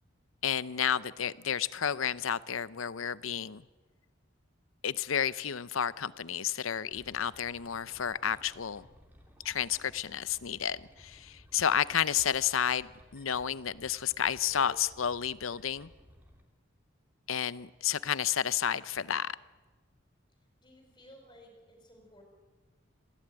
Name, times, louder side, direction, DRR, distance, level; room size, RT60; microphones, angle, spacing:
voice 1, 0.4-3.6 4.8-8.9 9.4-15.9 17.3-19.3, left 8 dB, 85° left, 0.7 m, -31 dB
sound 1, 6.9-16.4, equal, 10° right, 3.2 m, -58 dB
voice 2, 20.6-22.2, equal, 25° left, 5.0 m, -56 dB
26.5 x 16.5 x 8.9 m
head